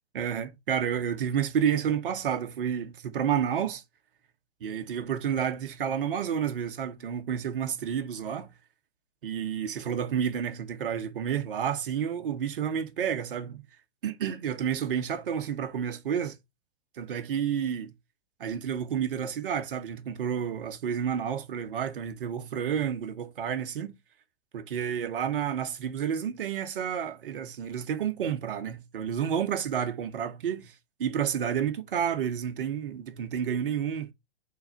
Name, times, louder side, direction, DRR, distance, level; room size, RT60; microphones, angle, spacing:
voice 1, 0.1-3.8 4.6-8.5 9.2-13.6 14.0-16.3 17.0-17.9 18.4-23.9 24.5-30.7 31.0-34.1, right 8 dB, 60° right, 1.2 m, -30 dB
4.7 x 4.2 x 5.6 m
figure-of-eight pair, 110°, 31 cm